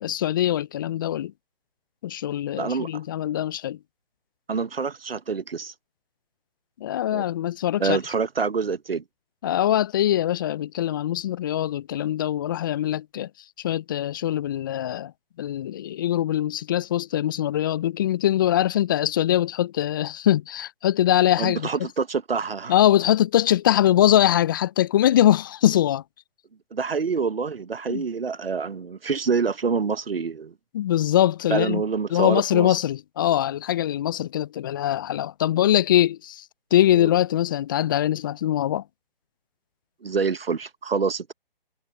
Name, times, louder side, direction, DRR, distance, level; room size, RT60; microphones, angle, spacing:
voice 1, 0.0-1.3 2.0-3.8 6.8-8.0 9.4-13.3 13.6-15.1 15.4-21.7 22.7-26.0 27.9-28.0 30.7-31.8 32.1-36.4 36.7-38.8, left 12 dB, 20° left, 0.6 m, -22 dB
voice 2, 2.6-3.0 4.5-5.7 7.1-7.2 7.8-9.0 21.4-22.7 26.7-30.5 31.5-32.8 36.9-37.1 40.0-41.3, right 5 dB, 80° right, 1.2 m, -26 dB
figure-of-eight pair, 145°, 29 cm